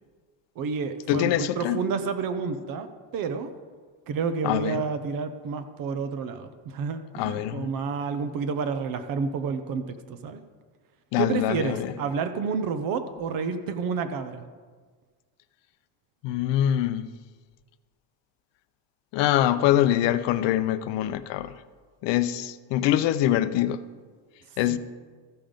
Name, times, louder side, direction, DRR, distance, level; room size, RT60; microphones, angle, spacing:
voice 1, 0.6-3.5 4.1-10.4 11.2-14.5 24.7-24.8, right 5 dB, 45° right, 9 dB, 0.8 m, -30 dB
voice 2, 1.1-1.8 4.4-4.8 7.1-7.7 11.1-11.9 16.2-17.1 19.1-21.5 22.0-23.8 24.6-24.8, left 12 dB, 70° left, 13 dB, 0.6 m, -24 dB
14.5 x 5.6 x 5.1 m, 1.5 s
cardioid pair, 165°, 46 cm